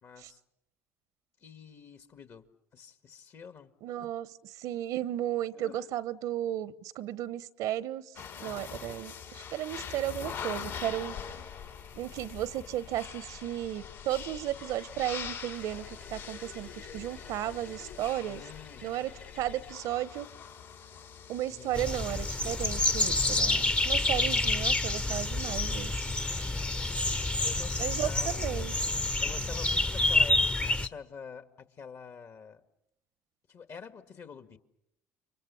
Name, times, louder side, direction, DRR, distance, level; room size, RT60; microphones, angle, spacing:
voice 1, 0.0-0.4 1.4-3.7 4.0-4.1 5.5-5.8 18.2-18.9 21.5-22.0 27.4-28.6 29.2-32.6 33.5-34.6, left 6 dB, 50° left, 9 dB, 2.1 m, -47 dB
voice 2, 3.8-4.3 4.5-8.2 8.4-11.1 12.0-18.4 18.8-20.3 21.3-25.9 27.8-28.8, right 13 dB, 70° right, 17 dB, 1.0 m, -34 dB
sound 1, 8.2-23.5, left 7 dB, 70° left, 5.1 m, -44 dB
sound 2, 10.7-19.7, left 7 dB, 85° left, 6.6 m, -50 dB
sound 3, 21.7-30.9, left 2 dB, 20° left, 0.9 m, -28 dB
29.5 x 24.0 x 7.1 m, 0.79 s
hypercardioid pair, 65°, 6 cm